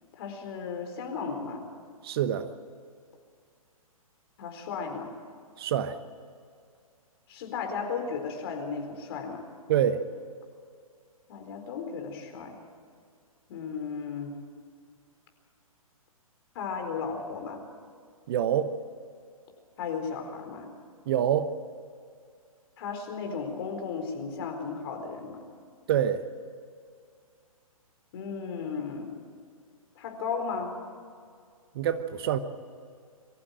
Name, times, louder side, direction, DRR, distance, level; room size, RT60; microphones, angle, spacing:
voice 1, 0.1-1.7 4.4-5.1 7.3-9.4 11.3-12.6 13.5-14.4 16.5-17.6 19.8-20.7 22.8-25.4 28.1-29.2 30.0-30.8, left 5 dB, 45° left, 4 dB, 4.3 m, -35 dB
voice 2, 2.0-2.5 5.6-6.0 9.7-10.0 18.3-18.7 21.1-21.5 25.9-26.2 31.7-32.4, right 9 dB, 40° right, 11 dB, 1.2 m, -26 dB
23.5 x 15.0 x 9.0 m, 2.2 s
figure-of-eight pair, 125°, 18 cm